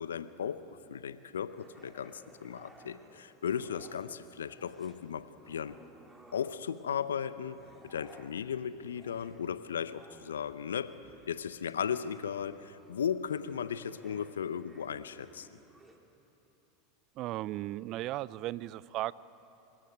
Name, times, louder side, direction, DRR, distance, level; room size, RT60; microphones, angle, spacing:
voice 1, 0.0-5.8 6.3-11.0 11.3-15.5, left 8 dB, 80° left, 15 dB, 0.7 m, -36 dB
sound 1, 1.5-4.2 4.5-6.9 7.4-16.0, right 2 dB, 10° right, 2.6 m, -59 dB
voice 2, 17.2-19.1, right 16 dB, 45° right, 21 dB, 0.4 m, -36 dB
25.5 x 14.0 x 9.3 m, 3.0 s
figure-of-eight pair, 85°, 0 cm